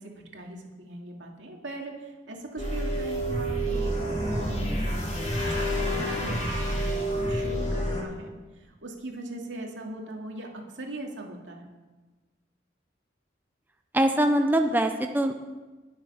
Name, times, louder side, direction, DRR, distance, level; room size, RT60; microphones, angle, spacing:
voice 1, 0.0-11.7, right 1 dB, 85° right, 0 dB, 2.5 m, -40 dB
sound 1, 2.6-8.0, equal, 35° left, 2.7 m, -28 dB
voice 2, 13.9-15.3, right 1 dB, 10° right, 5 dB, 0.6 m, -23 dB
20.5 x 7.4 x 5.7 m, 1.2 s
head